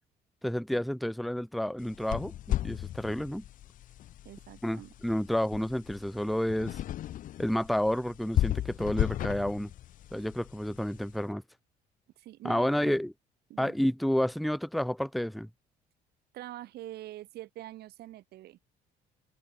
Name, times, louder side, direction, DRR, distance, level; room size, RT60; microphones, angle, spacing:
voice 1, 0.4-2.3 2.6-3.4 4.6-6.8 7.4-9.7 10.1-11.4 12.4-13.1 13.6-15.5, equal, ahead, 0.6 m, -30 dB
sound 1, 1.8-11.2, left 13 dB, 55° left, 0.5 m, -35 dB
voice 2, 4.3-4.9 12.2-13.0 13.5-13.8 16.3-18.6, right 15 dB, 70° right, 1.9 m, -45 dB
open air
cardioid pair, 110°, 17 cm